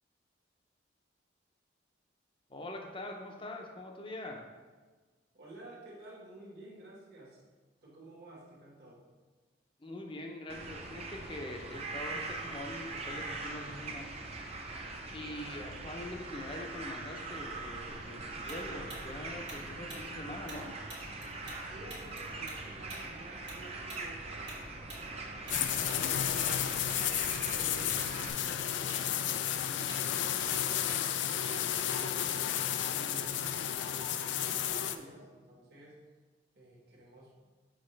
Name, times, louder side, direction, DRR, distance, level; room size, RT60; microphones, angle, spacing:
voice 1, 2.5-4.4 9.8-14.1 15.1-20.7, left 1 dB, 30° left, 2 dB, 0.7 m, -43 dB
voice 2, 5.3-7.4 7.8-9.0 21.3-24.5 25.0-26.5 26.9-30.3 30.7-32.5 32.8-36.0 36.5-37.4, right 1 dB, 60° right, -4 dB, 1.5 m, -52 dB
sound 1, 10.5-28.3, right 3 dB, 35° right, 0.6 m, -42 dB
Tick-tock, 18.5-21.6 21.9-26.6 26.9-27.1 27.5-28.1 28.3-32.3, right 2 dB, 85° right, 1.5 m, -48 dB
sound 2, 25.5-35.0, left 10 dB, 85° left, 0.4 m, -32 dB
6.4 x 4.8 x 3.3 m, 1.4 s
head